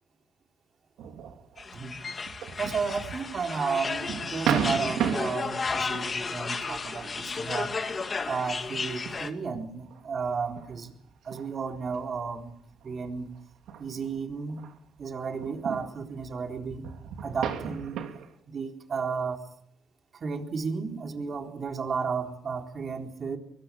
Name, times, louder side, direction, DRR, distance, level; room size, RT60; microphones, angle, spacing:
sound 1, 1.0-6.6 7.1-7.3 7.9-8.5 9.1-14.7 15.0-18.3, right 7 dB, 80° right, 3.0 m, -35 dB
sound 2, 1.6-9.3, left 4 dB, 35° left, 2.8 m, -33 dB
voice 1, 2.6-7.8 8.3-10.9 11.2-12.5 12.8-13.3 13.8-14.6 15.0-16.8 17.2-18.0 18.5-19.4 20.1-23.4, right 5 dB, 45° right, 3 dB, 4.1 m, -33 dB
24.0 x 23.0 x 8.7 m, 0.71 s
cardioid pair, 90°, 0 cm